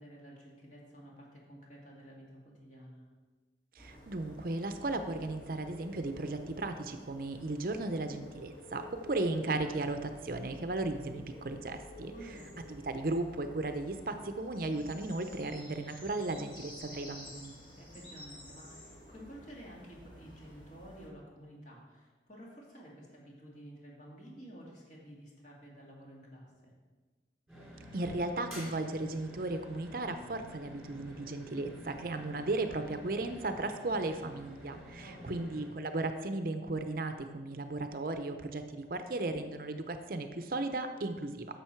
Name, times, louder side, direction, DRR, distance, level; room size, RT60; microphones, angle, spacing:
voice 1, 0.0-3.0 12.0-12.5 17.8-26.7 35.0-35.5, equal, 40° left, -3 dB, 2.4 m, -52 dB
sound 1, 3.8-21.1, equal, 25° left, 1.7 m, -52 dB
voice 2, 3.8-12.4 12.7-17.6 27.9-41.5, right 2 dB, 50° right, 7 dB, 0.6 m, -35 dB
sound 2, 27.5-35.7, equal, ahead, 3.3 m, -50 dB
10.0 x 6.9 x 4.5 m, 1.3 s
head